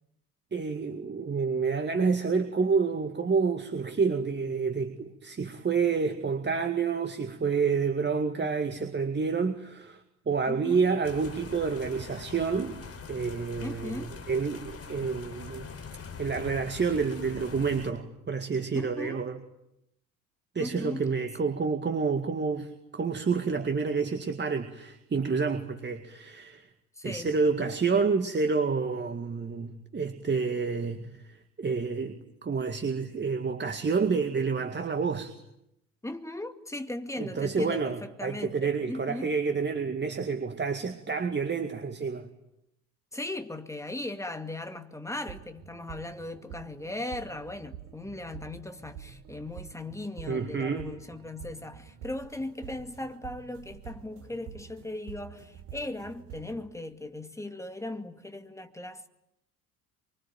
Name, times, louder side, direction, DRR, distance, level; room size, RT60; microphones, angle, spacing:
voice 1, 0.5-15.7 16.2-19.4 20.6-26.7 27.0-31.2 31.6-35.3 37.2-42.3 50.3-50.9, right 5 dB, 25° right, 2.1 m, -29 dB
voice 2, 10.5-10.8 13.6-14.2 18.7-19.3 20.6-21.1 27.0-27.4 36.0-39.3 43.1-59.1, left 2 dB, 5° left, 2.3 m, -38 dB
sound 1, 11.0-17.9, left 5 dB, 30° left, 4.3 m, -43 dB
sound 2, 45.1-56.6, right 9 dB, 55° right, 4.4 m, -47 dB
25.0 x 24.5 x 9.1 m
figure-of-eight pair, 60°, 44 cm